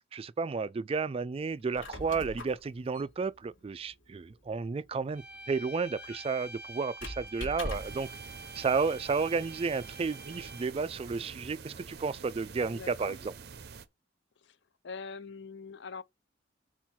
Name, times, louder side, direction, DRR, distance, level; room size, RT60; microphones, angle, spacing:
voice 1, 0.1-8.1 8.5-13.3, right 4 dB, 30° right, 0.3 m, -32 dB
Squeak, 1.5-8.1, left 1 dB, 90° left, 1.4 m, -44 dB
sound 1, 5.1-10.9, right 1 dB, 5° right, 2.1 m, -48 dB
sound 2, 7.7-13.9, right 5 dB, 55° right, 0.7 m, -47 dB
voice 2, 12.7-13.2 14.4-14.6 14.8-16.0, left 5 dB, 65° left, 0.5 m, -43 dB
4.4 x 4.4 x 5.8 m
head